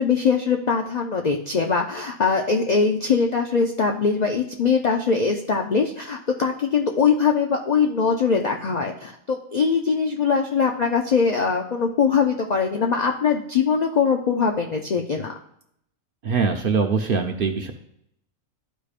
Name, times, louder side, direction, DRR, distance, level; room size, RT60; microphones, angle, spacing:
voice 1, 0.0-15.3, left 5 dB, 65° left, 3 dB, 0.4 m, -22 dB
voice 2, 16.2-17.7, right 5 dB, 55° right, 4 dB, 0.6 m, -22 dB
12.0 x 5.0 x 2.4 m, 0.74 s
omnidirectional pair, 1.4 m